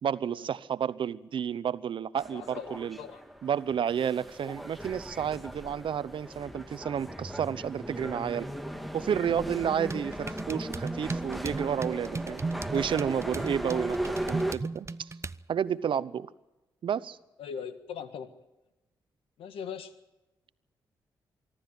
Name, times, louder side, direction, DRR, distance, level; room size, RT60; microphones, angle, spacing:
voice 1, 0.0-3.0 3.4-8.5 8.9-12.4 12.7-13.9 14.3-15.1 15.5-16.3 16.8-17.2, right 8 dB, 65° right, 17 dB, 0.9 m, -31 dB
sound 1, 2.2-14.5, right 1 dB, ahead, 1.8 m, -38 dB
voice 2, 2.3-3.2 13.7-13.9 17.4-18.3 19.4-19.9, left 7 dB, 80° left, 11 dB, 1.7 m, -40 dB
sound 2, 9.9-15.4, right 3 dB, 30° right, 0.7 m, -36 dB
25.0 x 12.5 x 9.0 m, 0.99 s
supercardioid pair, 50°, 9 cm